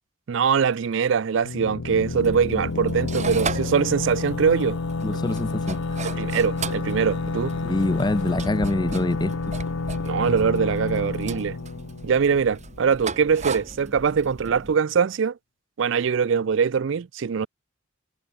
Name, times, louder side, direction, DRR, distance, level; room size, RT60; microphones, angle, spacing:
voice 1, 0.3-4.8 6.0-7.6 10.0-11.6 12.0-15.4 15.8-17.5, right 6 dB, 60° right, 0.4 m, -22 dB
sound 1, 1.4-12.9, left 3 dB, 90° left, 0.9 m, -30 dB
sound 2, 2.0-14.7, right 3 dB, 35° right, 4.4 m, -37 dB
Male singing, 3.1-8.4, left 3 dB, 55° left, 3.9 m, -46 dB
voice 2, 5.0-5.8 7.6-9.3, left 2 dB, 20° left, 0.4 m, -25 dB
head